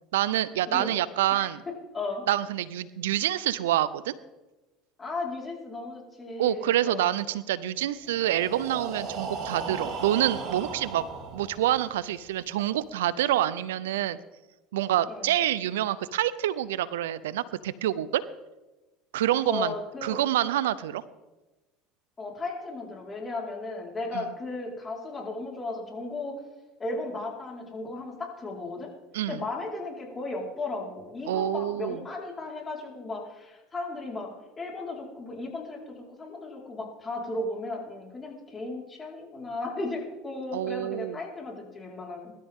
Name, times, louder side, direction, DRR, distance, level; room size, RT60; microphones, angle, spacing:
voice 1, 0.1-1.6 2.3-4.1 6.4-11.0 11.3-14.2 14.7-18.2 19.1-19.7 20.0-21.0 24.1-24.2 29.1-29.4 31.3-32.0 40.5-41.2, right 13 dB, 90° right, 17 dB, 0.6 m, -27 dB
voice 2, 5.0-7.1 15.1-15.4 19.5-20.2 22.2-26.4 26.8-28.9 29.3-34.3 34.6-42.3, left 2 dB, 25° left, -1 dB, 4.7 m, -35 dB
Breathing, 8.1-11.9, right 4 dB, 50° right, 3.4 m, -36 dB
22.5 x 13.0 x 3.7 m, 1.1 s
supercardioid pair, 90°, 0 cm